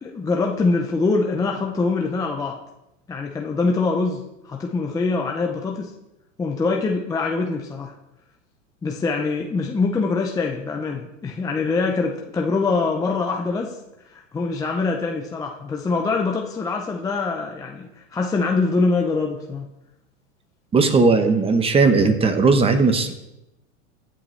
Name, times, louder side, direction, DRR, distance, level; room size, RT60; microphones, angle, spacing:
voice 1, 0.0-2.6 3.1-5.9 6.4-7.9 8.8-13.8 14.1-19.7, left 3 dB, 10° left, 1 dB, 0.5 m, -24 dB
voice 2, 20.7-23.1, right 4 dB, 15° right, 8 dB, 0.8 m, -17 dB
14.5 x 7.8 x 3.2 m, 0.91 s
supercardioid pair, 135°, 39 cm